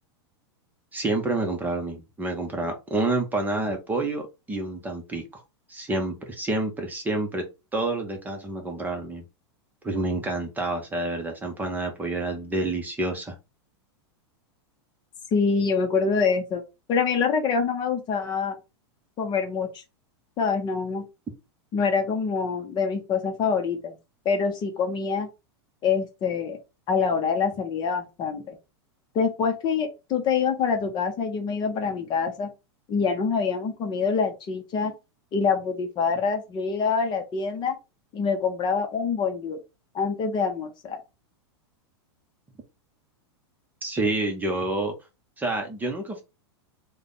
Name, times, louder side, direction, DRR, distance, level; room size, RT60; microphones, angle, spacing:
voice 1, 0.9-5.4 5.7-7.4 7.7-9.2 9.8-13.3 43.8-44.9 45.4-46.2, right 2 dB, 10° right, 3 dB, 0.8 m, -28 dB
voice 2, 15.3-16.6 16.9-18.6 19.2-19.8 20.4-21.0 21.7-24.0 24.2-25.3 25.8-26.6 26.9-28.6 29.1-32.5 32.9-34.9 35.3-37.8 38.1-39.6 39.9-41.0, left 5 dB, 30° left, 5 dB, 0.8 m, -25 dB
3.2 x 2.3 x 3.9 m, 0.26 s
hypercardioid pair, 130°, 14 cm